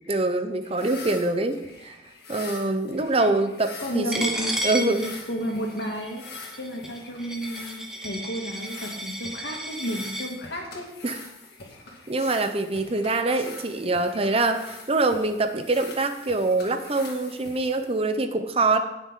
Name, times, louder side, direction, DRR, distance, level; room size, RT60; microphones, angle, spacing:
voice 1, 0.1-2.0 2.3-4.3 4.6-5.0 11.0-11.2 12.1-18.8, right 2 dB, 30° right, 8 dB, 0.7 m, -24 dB
sound 1, 0.6-18.2, left 3 dB, 55° left, 2.4 m, -44 dB
voice 2, 3.8-10.8, equal, 75° left, 0 dB, 2.5 m, -32 dB
Coin (dropping), 4.1-10.3, right 1 dB, 5° right, 1.3 m, -33 dB
18.5 x 6.5 x 3.8 m, 0.93 s
head